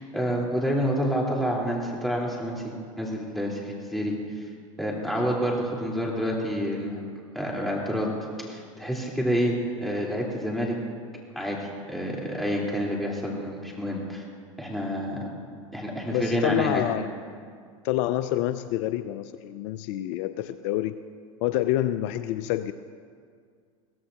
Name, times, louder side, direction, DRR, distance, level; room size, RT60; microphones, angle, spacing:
voice 1, 0.0-4.5 4.8-7.1 7.3-8.1 8.4-9.6 9.8-10.8 11.4-14.2 14.6-15.3 15.7-16.8, equal, ahead, -4 dB, 4.2 m, -28 dB
voice 2, 16.1-17.1 17.8-20.9 21.4-22.7, left 13 dB, 60° left, 11 dB, 0.6 m, -27 dB
23.0 x 16.5 x 3.0 m, 2.1 s
hypercardioid pair, 95°, 17 cm